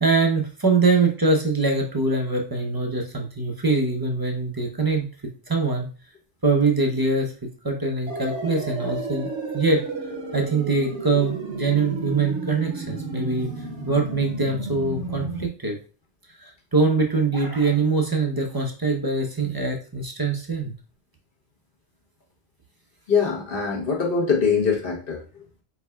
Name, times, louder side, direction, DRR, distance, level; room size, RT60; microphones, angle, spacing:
voice 1, 0.0-5.1 5.5-5.9 6.4-7.3 7.6-9.9 10.3-15.8 16.4-20.7, right 3 dB, 25° right, 2 dB, 0.5 m, -23 dB
sound 1, 8.1-15.5, right 3 dB, 70° right, 1.1 m, -32 dB
voice 2, 23.1-25.6, left 5 dB, 50° left, -1 dB, 1.1 m, -23 dB
4.6 x 4.4 x 2.2 m, 0.36 s
omnidirectional pair, 1.3 m